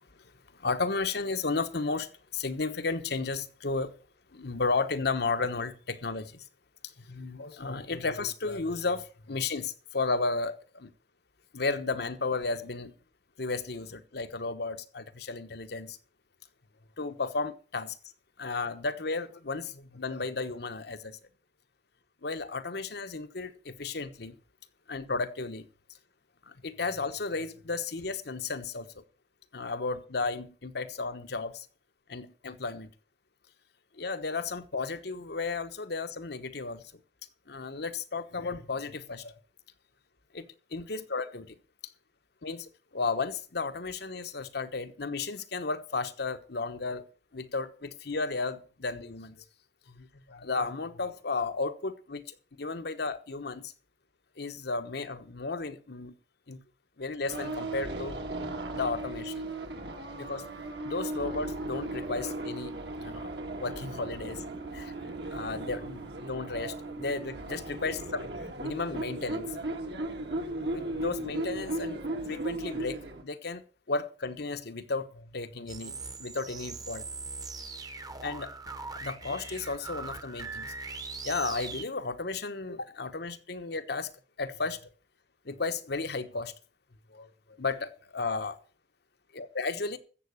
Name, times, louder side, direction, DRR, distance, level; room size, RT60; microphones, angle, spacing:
voice 1, 0.6-3.9 4.3-6.4 7.0-10.9 11.5-12.9 13.4-16.0 17.0-18.0 18.4-21.2 22.2-24.3 24.9-25.7 26.5-29.0 29.5-31.7 32.1-32.9 34.0-36.8 37.5-39.3 40.3-41.5 42.4-47.0 47.3-49.4 49.9-53.7 54.4-56.1 56.5-56.6 57.0-58.2 58.7-59.4 60.2-60.4 60.8-63.3 63.6-64.4 64.7-64.9 65.3-69.5 70.7-72.0 72.3-73.6 73.9-77.1 78.2-78.5 79.0-80.7 81.2-84.1 84.4-84.8 85.5-86.5 87.1-87.3 87.6-88.6 89.3-90.0, left 3 dB, 65° left, 1.1 m, -34 dB
sound 1, 57.3-73.2, right 2 dB, 65° right, 2.2 m, -36 dB
sound 2, 75.7-81.9, right 4 dB, 20° right, 1.1 m, -41 dB
14.0 x 7.8 x 6.3 m
head